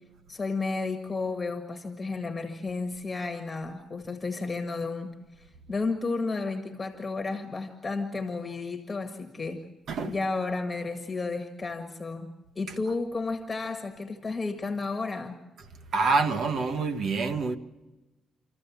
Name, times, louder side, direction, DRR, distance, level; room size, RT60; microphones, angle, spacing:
voice 1, 0.3-9.6 10.1-15.4, left 3 dB, 25° left, 1.7 m, -32 dB
voice 2, 15.9-17.6, right 4 dB, 60° right, 1.4 m, -26 dB
27.0 x 14.0 x 7.2 m
cardioid pair, 90°, 0 cm